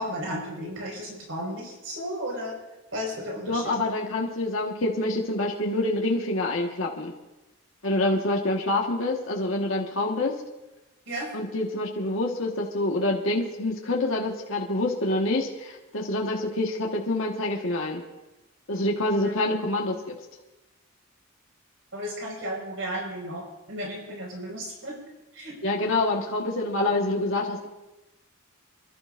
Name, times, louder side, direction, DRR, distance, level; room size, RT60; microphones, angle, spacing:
voice 1, 0.0-2.5 2.9-3.6 11.1-11.3 21.9-25.0 25.3-25.6, equal, 75° right, -2 dB, 5.3 m, -34 dB
voice 2, 3.5-7.1 7.8-10.3 11.3-18.0 18.7-20.1 25.6-27.7, left 2 dB, 75° left, -1 dB, 1.5 m, -26 dB
29.0 x 12.0 x 2.6 m, 1.0 s
head